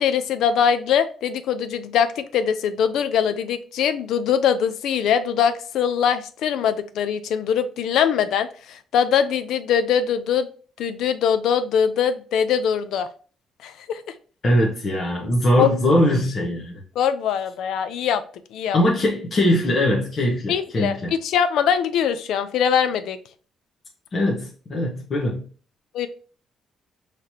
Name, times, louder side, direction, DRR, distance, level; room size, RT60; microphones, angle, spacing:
voice 1, 0.0-10.5 10.8-13.1 13.6-14.0 15.6-15.7 17.0-18.2 18.5-18.8 20.5-21.0 21.2-23.2 25.9-26.1, left 8 dB, 80° left, 11 dB, 0.5 m, -22 dB
voice 2, 14.4-16.8 18.7-21.1 24.1-25.4, left 1 dB, 40° left, -2 dB, 1.1 m, -21 dB
5.7 x 3.3 x 2.8 m, 0.40 s
cardioid pair, 120°, 0 cm